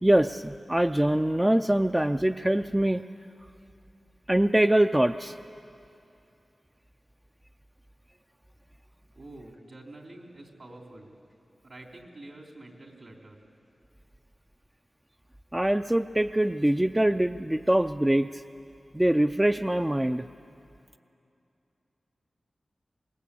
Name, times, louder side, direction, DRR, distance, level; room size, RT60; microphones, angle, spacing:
voice 1, 0.0-3.0 4.3-5.4 15.5-18.4 18.9-20.3, right 1 dB, 15° right, 8 dB, 0.5 m, -23 dB
voice 2, 9.1-11.2 11.6-13.4, right 2 dB, 60° right, 1 dB, 3.6 m, -47 dB
25.0 x 21.5 x 8.5 m, 2.7 s
cardioid pair, 55°, 0 cm